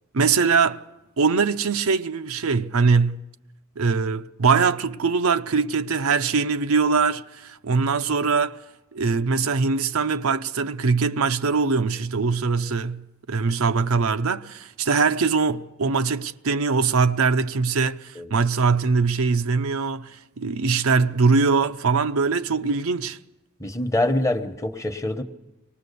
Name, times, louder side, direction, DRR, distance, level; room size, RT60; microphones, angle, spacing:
voice 1, 0.1-0.8 1.2-3.2 3.8-8.6 8.9-23.2, right 4 dB, 75° right, 0.6 m, -22 dB
voice 2, 23.6-25.2, left 1 dB, 15° left, 1.1 m, -25 dB
24.5 x 19.5 x 6.8 m
head